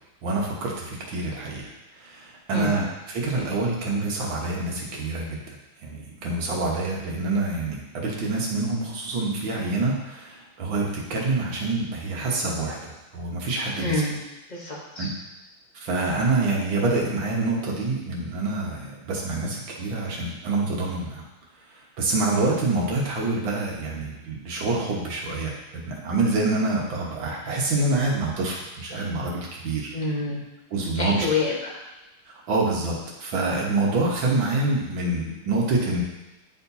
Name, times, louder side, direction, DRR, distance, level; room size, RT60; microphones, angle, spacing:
voice 1, 0.2-1.7 2.0-5.4 5.8-13.9 15.0-15.1 15.7-21.2 22.0-29.9 30.7-31.3 32.5-32.9 33.2-36.0, right 2 dB, 65° right, -3 dB, 2.0 m, -26 dB
voice 2, 13.8-14.2 14.5-15.1 29.9-30.4 30.9-31.8, left 3 dB, 40° left, -3 dB, 0.6 m, -27 dB
10.5 x 4.3 x 2.7 m, 1.0 s
omnidirectional pair, 2.4 m